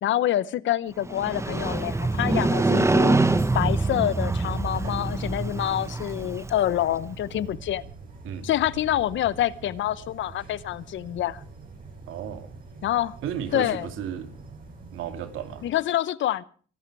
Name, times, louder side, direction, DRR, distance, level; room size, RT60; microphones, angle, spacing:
voice 1, 0.0-3.2 3.5-7.8 8.4-11.4 12.8-13.2 13.5-13.9 15.6-16.4, left 12 dB, 70° left, 0.8 m, -26 dB
Motorcycle, 1.0-7.0, right 2 dB, 15° right, 1.0 m, -25 dB
sound 1, 1.5-15.7, right 3 dB, 45° right, 7.8 m, -44 dB
voice 2, 12.1-12.5 13.2-14.3 14.9-15.6, right 9 dB, 85° right, 2.5 m, -34 dB
23.0 x 11.5 x 4.7 m
cardioid pair, 90°, 20 cm